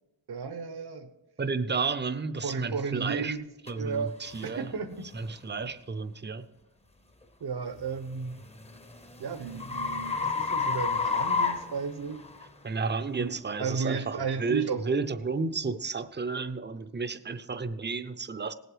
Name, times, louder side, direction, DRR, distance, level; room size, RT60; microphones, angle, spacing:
voice 1, 0.3-1.1 2.4-3.4 3.8-4.1 4.4-5.0 7.4-8.4 9.2-12.2 13.2-13.3 13.6-14.8, right 5 dB, 65° right, 8 dB, 1.0 m, -33 dB
voice 2, 1.4-3.4 3.7-4.7 5.1-6.4 12.6-18.5, right 4 dB, 25° right, 12 dB, 0.6 m, -32 dB
sound 1, 3.7-3.8 4.3-4.5 5.1-5.3 8.0-12.5, left 5 dB, 15° left, 0.7 m, -30 dB
18.0 x 7.9 x 4.9 m, 0.97 s
wide cardioid pair, 110°, 42 cm